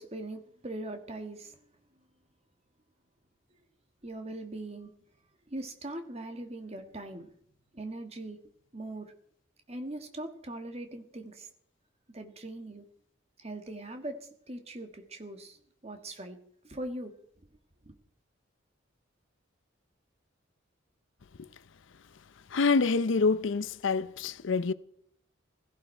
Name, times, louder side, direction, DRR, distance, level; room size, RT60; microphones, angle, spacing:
voice 1, 0.0-1.6 4.0-4.9 5.5-7.3 7.7-8.4 8.7-9.1 9.7-11.5 12.1-12.8 13.4-16.4 16.6-17.1 17.8-17.9, right 1 dB, 30° right, 1.6 m, -41 dB
voice 2, 22.5-24.7, left 4 dB, 70° left, 0.6 m, -26 dB
16.5 x 15.0 x 4.4 m
head